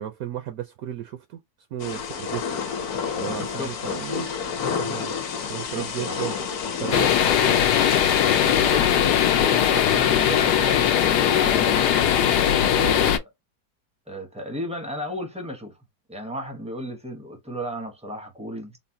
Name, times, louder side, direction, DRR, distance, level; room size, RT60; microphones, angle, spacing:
voice 1, 0.0-1.4 1.7-4.3 4.8-5.2 5.5-6.4 6.8-7.6 12.7-13.1, right 11 dB, 70° right, 1.0 m, -35 dB
Thunder / Rain, 1.8-8.7, left 6 dB, 70° left, 1.3 m, -30 dB
voice 2, 3.6-4.0 5.8-6.2 8.4-12.0 12.6-13.3 14.1-15.7 16.1-18.7, equal, 5° right, 0.5 m, -34 dB
sound 1, 6.9-13.2, left 10 dB, 85° left, 1.2 m, -20 dB
4.0 x 2.0 x 2.7 m
omnidirectional pair, 1.7 m